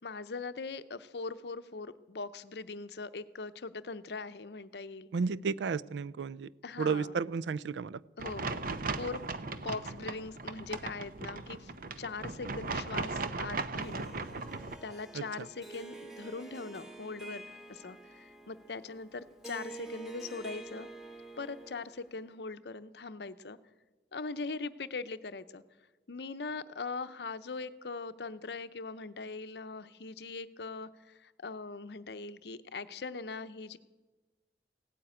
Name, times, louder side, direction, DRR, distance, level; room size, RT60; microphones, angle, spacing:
voice 1, 0.0-5.1 6.6-7.2 8.2-11.7 12.0-14.1 14.8-20.9 21.4-23.6 24.1-25.6 26.1-33.8, left 4 dB, 65° left, 13 dB, 0.7 m, -41 dB
voice 2, 5.1-6.5 6.8-8.0 15.1-15.2, right 5 dB, 85° right, 20 dB, 0.4 m, -32 dB
sound 1, 8.2-14.8, right 3 dB, 55° right, 0.8 m, -37 dB
Harp, 13.8-22.2, right 2 dB, 5° right, 1.4 m, -48 dB
16.5 x 9.3 x 8.8 m, 1.2 s
head